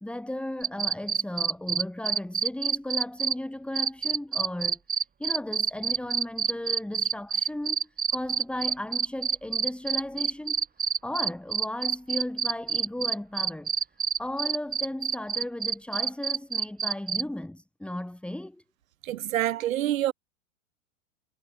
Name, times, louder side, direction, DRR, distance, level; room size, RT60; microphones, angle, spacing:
voice 1, 0.0-4.8 5.2-7.8 8.1-10.7 11.0-13.7 14.2-18.6, left 1 dB, 5° left, 3.6 m, -35 dB
sound 1, 0.6-3.3 3.8-17.2, right 7 dB, 20° right, 3.5 m, -27 dB
voice 2, 19.0-20.1, right 13 dB, 75° right, 1.4 m, -26 dB
hypercardioid pair, 110°, 41 cm